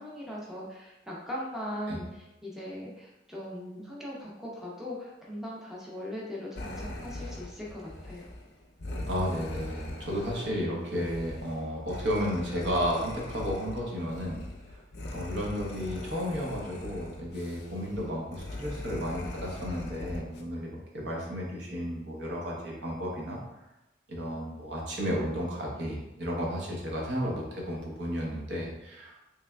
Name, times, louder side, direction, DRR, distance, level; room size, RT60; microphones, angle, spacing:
voice 1, 0.0-8.3, equal, ahead, -5 dB, 0.5 m, -39 dB
sound 1, 6.6-20.4, left 1 dB, 60° left, 0.5 m, -41 dB
voice 2, 9.1-14.8 15.1-23.4 24.1-29.3, equal, 70° right, -2 dB, 0.8 m, -33 dB
3.4 x 3.2 x 2.2 m, 0.95 s
head